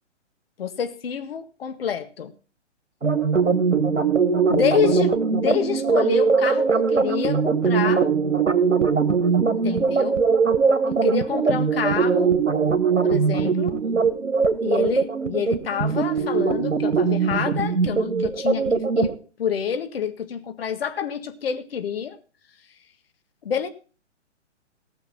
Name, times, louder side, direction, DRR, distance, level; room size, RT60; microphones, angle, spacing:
voice 1, 0.6-2.3 4.5-8.0 9.5-10.2 10.8-12.3 13.0-13.8 14.6-19.1 19.4-22.2 23.4-23.7, left 8 dB, 50° left, 9 dB, 1.8 m, -27 dB
sound 1, 3.0-19.2, right 5 dB, 85° right, 1.6 m, -21 dB
18.0 x 6.5 x 5.8 m, 0.38 s
figure-of-eight pair, 130°, 37 cm